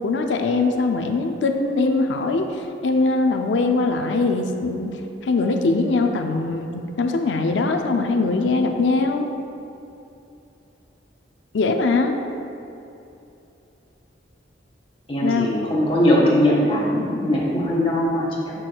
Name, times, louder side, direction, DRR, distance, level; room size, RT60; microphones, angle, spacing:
voice 1, 0.0-2.5 2.8-4.9 5.3-9.3 11.5-12.1 15.2-15.5, left 3 dB, 90° left, 4 dB, 0.5 m, -21 dB
voice 2, 15.1-18.5, left 1 dB, 30° left, -5 dB, 1.3 m, -20 dB
7.5 x 6.2 x 2.3 m, 2.8 s
head